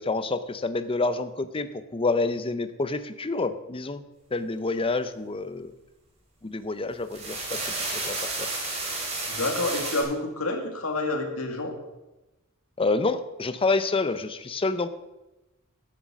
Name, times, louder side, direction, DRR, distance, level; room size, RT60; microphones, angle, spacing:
voice 1, 0.0-4.0 4.3-5.7 6.4-7.6 7.9-8.9 12.8-14.9, left 3 dB, 25° left, 12 dB, 0.6 m, -28 dB
sound 1, 6.9-10.0, right 2 dB, 30° right, 3.8 m, -31 dB
voice 2, 9.3-11.8, left 2 dB, 80° left, 3 dB, 2.2 m, -28 dB
12.5 x 7.6 x 6.2 m, 1.0 s
head